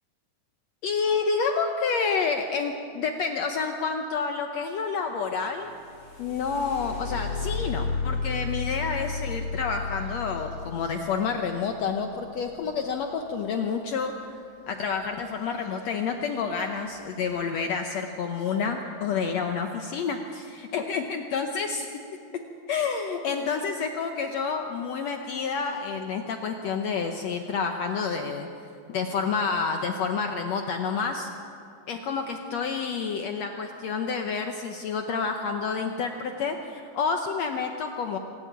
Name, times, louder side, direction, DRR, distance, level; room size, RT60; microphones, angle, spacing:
voice 1, 0.8-5.7 6.2-14.3 14.7-21.9 22.7-28.5 28.9-31.3 31.9-38.2, left 5 dB, 70° left, 5 dB, 1.8 m, -29 dB
sound 1, 5.6-13.5 15.5-15.7 16.1-16.7 17.3-17.4 17.9-18.2, left 4 dB, 30° left, 3.1 m, -33 dB
25.0 x 12.0 x 9.2 m, 2.5 s
omnidirectional pair, 3.9 m